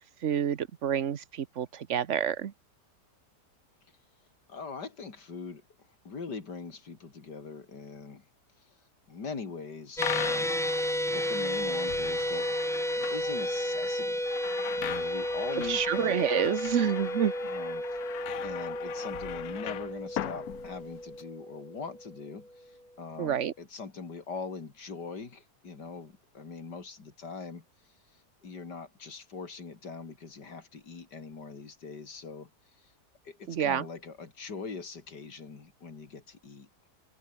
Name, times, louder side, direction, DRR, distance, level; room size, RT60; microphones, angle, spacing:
voice 1, 0.0-2.5 15.6-17.3 23.2-23.5 33.5-33.9, right 9 dB, 50° right, 1.2 m, -28 dB
voice 2, 4.5-5.6 6.1-8.3 9.1-10.6 11.1-12.5 12.9-14.2 14.8-16.2 17.5-18.0 18.4-27.6 28.4-32.5 33.3-36.7, left 4 dB, 90° left, 3.5 m, -42 dB
sound 1, 10.0-21.2, left 12 dB, 65° left, 1.2 m, -39 dB
sound 2, 10.0-22.3, equal, ahead, 1.9 m, -32 dB
omnidirectional pair, 1.8 m